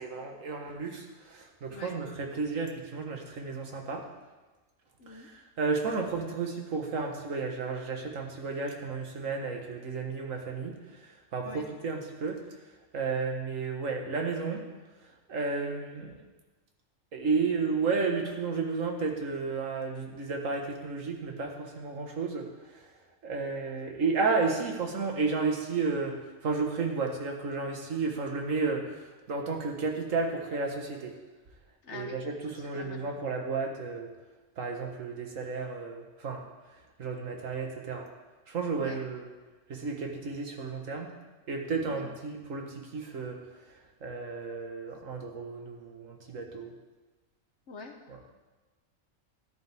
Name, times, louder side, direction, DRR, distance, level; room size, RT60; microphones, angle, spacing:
voice 1, 0.0-4.1 5.1-12.4 12.9-14.6 15.3-16.2 17.1-22.9 23.2-31.1 31.9-34.1 34.6-36.4 37.0-38.1 38.5-39.3 39.7-41.1 41.5-43.4 44.0-46.7 48.1-48.2, right 4 dB, 90° right, 2 dB, 1.7 m, -32 dB
voice 2, 5.0-5.3 11.4-11.7 31.8-32.2 32.5-33.0 38.8-39.0 41.8-42.0 47.7-48.0, left 4 dB, 65° left, 4 dB, 1.3 m, -45 dB
13.0 x 11.0 x 3.5 m, 1.2 s
omnidirectional pair, 1.3 m